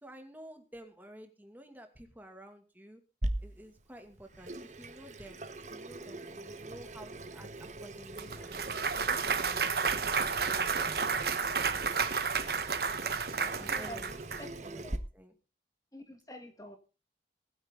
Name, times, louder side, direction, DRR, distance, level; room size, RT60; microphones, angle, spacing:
voice 1, 0.0-3.0 3.4-8.6 9.0-9.7 10.0-10.1 10.4-11.3 13.4-14.2 14.6-15.3, equal, 10° right, 5 dB, 2.4 m, -51 dB
Water tap faucet / Sink (filling or washing), 3.2-15.0, right 1 dB, 40° right, 1.5 m, -42 dB
Clapping / Cheering / Applause, 8.2-14.4, right 5 dB, 55° right, 1.3 m, -31 dB
voice 2, 13.6-14.9 15.9-16.8, equal, 20° left, 6 dB, 1.8 m, -47 dB
20.5 x 9.9 x 3.9 m, 0.32 s
head